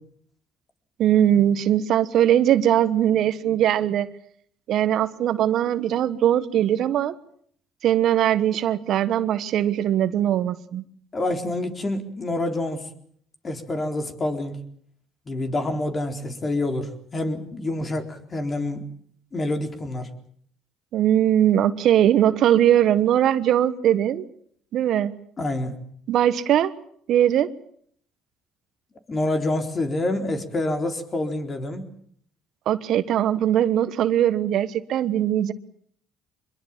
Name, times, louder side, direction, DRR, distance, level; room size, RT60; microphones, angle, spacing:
voice 1, 1.0-4.1 4.7-7.1 7.8-10.8 20.9-24.2 24.7-25.1 26.1-26.7 27.1-27.5 32.7-35.5, right 11 dB, 65° right, 13 dB, 1.3 m, -20 dB
voice 2, 11.1-12.9 13.4-14.6 15.3-18.9 19.3-20.1 25.4-25.7 29.1-31.8, left 2 dB, 35° left, 6 dB, 4.1 m, -27 dB
24.5 x 22.0 x 7.4 m, 0.64 s
supercardioid pair, 75°, 0 cm